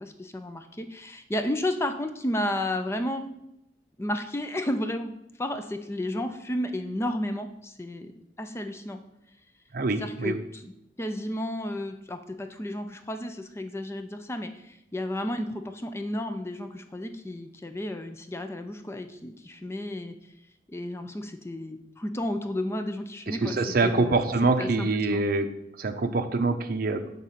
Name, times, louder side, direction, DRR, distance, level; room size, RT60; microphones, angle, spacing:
voice 1, 0.0-3.2 4.0-5.1 5.4-8.1 8.4-9.0 10.0-10.7 11.0-20.1 20.7-24.2 24.6-25.2, left 1 dB, 15° left, 7 dB, 0.4 m, -32 dB
voice 2, 9.7-10.4 23.3-25.5 25.8-27.0, right 3 dB, 55° right, 7 dB, 0.6 m, -25 dB
6.7 x 3.6 x 5.6 m, 0.82 s
head